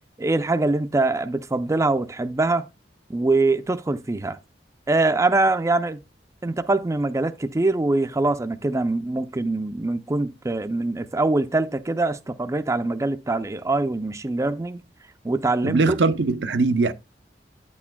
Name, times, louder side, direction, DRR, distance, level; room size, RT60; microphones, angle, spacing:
voice 1, 0.2-2.7 3.1-4.4 4.9-6.0 6.4-14.8 15.2-15.8, right 2 dB, 15° right, 0.4 m, -23 dB
voice 2, 15.6-16.9, right 3 dB, 75° right, 0.6 m, -21 dB
8.9 x 8.4 x 2.2 m
head